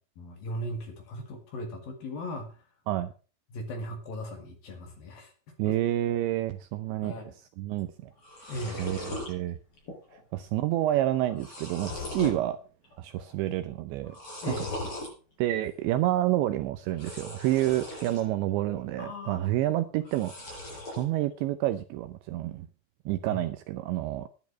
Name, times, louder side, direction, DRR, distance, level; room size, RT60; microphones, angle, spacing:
voice 1, 0.2-2.6 3.5-5.3 5.6-5.8 7.0-7.3 8.5-8.8 12.2-12.3 14.4-14.8 19.0-19.5 23.3-23.4, left 1 dB, 55° left, 5 dB, 3.2 m, -37 dB
voice 2, 5.6-7.1 7.6-8.1 8.8-9.6 10.3-12.6 13.0-14.2 15.4-20.6 20.9-22.7 23.1-24.3, right 14 dB, 80° right, 11 dB, 2.7 m, -29 dB
sound 1, 7.8-7.9 8.1-9.3 9.8-10.2 10.4-10.5 11.1-12.4 12.8-13.3 14.0-15.1 16.9-18.2 18.7-19.3 20.0-21.0, left 1 dB, 25° left, 7.0 m, -39 dB
11.5 x 10.5 x 5.9 m, 0.37 s
omnidirectional pair, 5.8 m